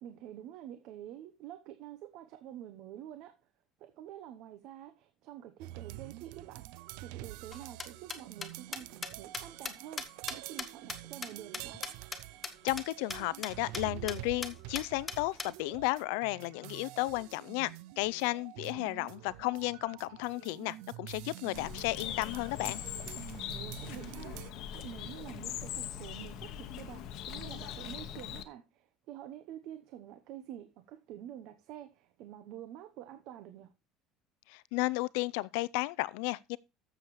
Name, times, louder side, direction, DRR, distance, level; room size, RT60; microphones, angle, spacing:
voice 1, 0.0-3.5 3.8-11.8 18.6-18.9 23.5-33.7, right 11 dB, 50° right, 0.9 m, -48 dB
sound 1, 5.6-24.5, right 18 dB, 65° right, 0.4 m, -47 dB
sound 2, 7.5-12.2 12.4-12.5 12.8-12.9 13.1-13.2 13.4-13.8 14.1-14.2 14.4-15.5, left 4 dB, 10° left, 1.0 m, -38 dB
voice 2, 12.6-22.8 34.5-36.6, left 21 dB, 85° left, 0.5 m, -33 dB
Bird, 21.5-28.4, left 9 dB, 45° left, 0.9 m, -41 dB
13.5 x 7.1 x 3.2 m
cardioid pair, 180°, 0 cm